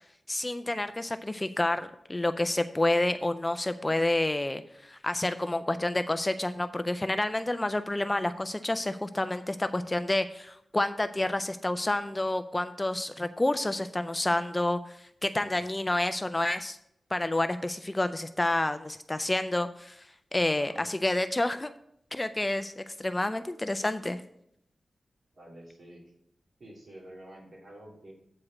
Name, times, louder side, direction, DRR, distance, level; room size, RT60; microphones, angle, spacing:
voice 1, 0.3-16.8 17.1-20.0 20.3-21.7 22.1-24.2, left 1 dB, 15° left, 10 dB, 0.3 m, -29 dB
voice 2, 25.3-26.0 26.6-28.1, right 1 dB, 55° right, -3 dB, 2.6 m, -48 dB
8.5 x 4.9 x 6.3 m, 0.75 s
wide cardioid pair, 165°, 0 cm